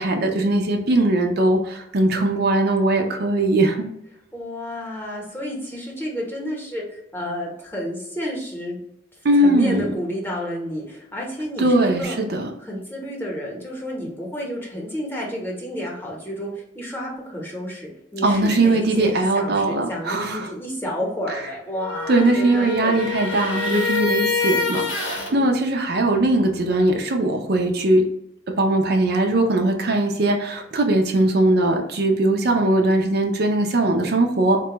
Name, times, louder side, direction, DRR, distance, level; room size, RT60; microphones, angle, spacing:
voice 1, 0.0-3.9 9.2-9.8 11.6-12.5 18.2-20.5 21.3-21.4 22.1-28.0 28.6-34.6, right 2 dB, 55° right, 3 dB, 0.5 m, -20 dB
voice 2, 4.3-8.8 9.4-12.2 12.6-23.7 25.3-25.5, equal, 10° left, -3 dB, 0.9 m, -31 dB
sound 1, 21.7-25.3, left 4 dB, 85° left, 0.9 m, -26 dB
4.1 x 2.2 x 2.9 m, 0.80 s
head